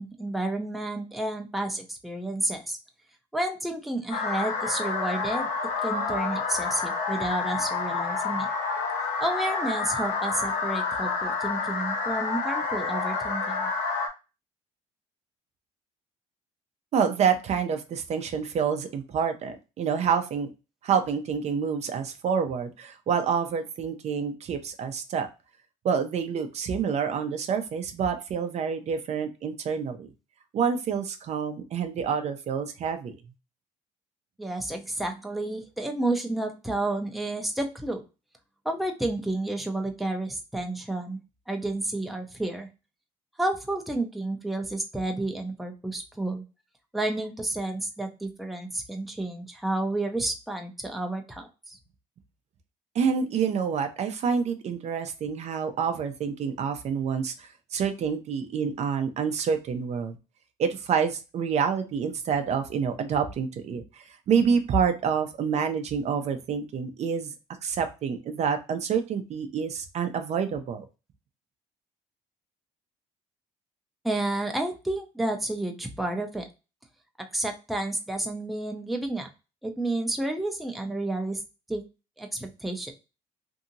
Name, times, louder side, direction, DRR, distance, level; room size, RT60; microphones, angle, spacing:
voice 1, 0.0-2.8 3.3-5.5 5.8-8.5 9.2-13.7 34.4-38.0 38.7-41.2 41.5-42.7 43.4-46.4 46.9-51.8 74.0-76.5 77.3-79.3 79.6-81.4 81.7-81.8 82.2-82.9, right 2 dB, ahead, 3 dB, 0.5 m, -30 dB
sound 1, 4.1-14.1, left 4 dB, 75° left, 0.8 m, -29 dB
voice 2, 16.9-20.5 20.8-25.3 25.8-30.1 30.5-33.1 52.9-60.1 60.6-67.3 67.6-70.9, right 6 dB, 50° right, 7 dB, 0.5 m, -27 dB
2.7 x 2.7 x 2.5 m, 0.29 s
cardioid pair, 105°, 14 cm